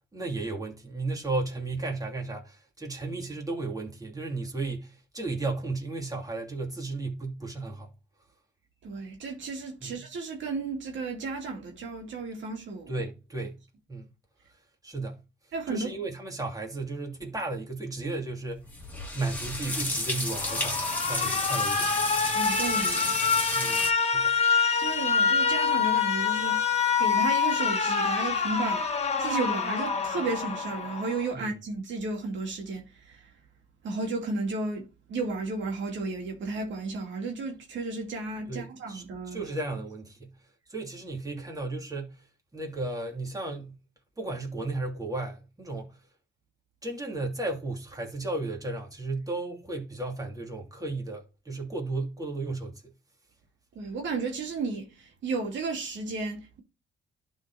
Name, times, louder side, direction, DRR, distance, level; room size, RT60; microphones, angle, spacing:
voice 1, 0.0-7.9 9.8-10.1 12.9-13.6 13.9-14.1 14.8-15.2 15.7-18.7 19.1-21.9 23.5-24.4 31.3-31.5 38.5-40.3 40.7-42.2 42.5-43.8 44.2-46.0 46.8-52.9, right 2 dB, 15° right, 2.7 m, -34 dB
voice 2, 8.8-12.9 15.5-15.9 22.3-23.2 24.8-26.7 27.0-33.3 33.8-39.4 53.8-56.6, right 3 dB, 70° right, 2.2 m, -33 dB
sound 1, 18.5-23.9, left 2 dB, 10° left, 2.3 m, -32 dB
Alarm, 20.3-31.3, left 6 dB, 30° left, 1.5 m, -26 dB
11.5 x 4.2 x 2.8 m
cardioid pair, 90°, 20 cm